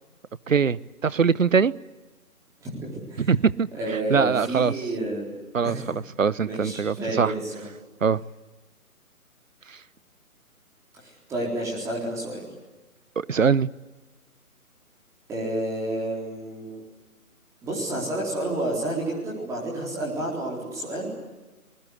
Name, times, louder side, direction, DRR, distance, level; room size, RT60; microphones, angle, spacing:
voice 1, 0.5-1.7 3.2-3.7 4.1-4.7 5.5-5.8 6.2-7.3 8.0-8.2 13.2-13.7, right 6 dB, 60° right, 20 dB, 0.9 m, -22 dB
voice 2, 2.6-3.3 3.7-6.0 6.4-7.6 10.9-12.4 15.3-16.8 17.6-21.1, right 1 dB, 5° right, -3 dB, 4.0 m, -30 dB
26.0 x 20.5 x 8.2 m, 1.2 s
figure-of-eight pair, 145°, 45 cm